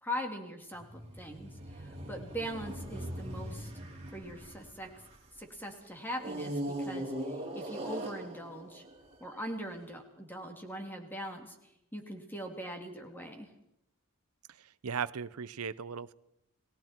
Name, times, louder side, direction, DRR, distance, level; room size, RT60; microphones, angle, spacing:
voice 1, 0.0-3.7 4.1-4.9 5.4-8.8 9.2-11.5 11.9-13.5, equal, 10° left, 3 dB, 3.1 m, -41 dB
sound 1, 0.7-5.4 6.2-9.6, right 1 dB, 25° right, 4.4 m, -40 dB
voice 2, 14.6-16.1, right 6 dB, 80° right, 16 dB, 0.6 m, -37 dB
30.0 x 19.0 x 4.6 m, 0.82 s
head